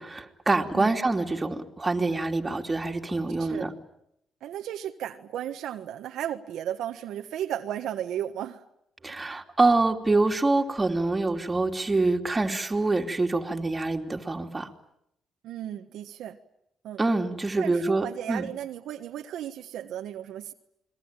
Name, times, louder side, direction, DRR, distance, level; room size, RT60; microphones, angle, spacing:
voice 1, 0.0-3.7 9.0-14.7 17.0-18.5, right 3 dB, 20° right, 3.0 m, -25 dB
voice 2, 4.4-8.6 9.0-9.2 15.4-16.4 16.8-17.0 17.6-20.5, right 11 dB, 80° right, 1.4 m, -34 dB
28.5 x 22.0 x 9.1 m
cardioid pair, 90°, 0 cm